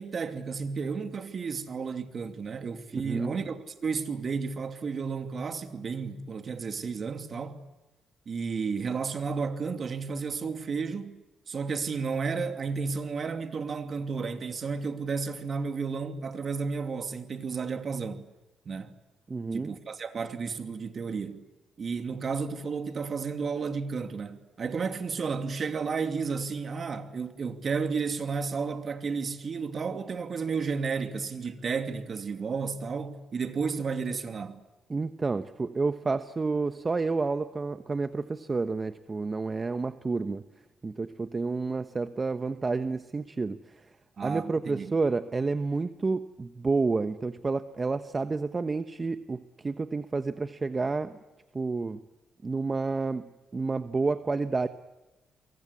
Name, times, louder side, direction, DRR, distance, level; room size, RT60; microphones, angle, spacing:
voice 1, 0.0-7.6 8.3-18.3 18.6-19.0 19.5-21.5 21.8-34.6 44.2-45.0, right 5 dB, 45° right, 2.7 m, -32 dB
voice 2, 3.0-3.4 19.3-19.7 34.9-40.4 40.8-43.8 44.2-51.1 51.5-52.0 52.4-54.7, right 3 dB, 30° right, 1.0 m, -30 dB
29.5 x 23.5 x 8.4 m
cardioid pair, 90°, 0 cm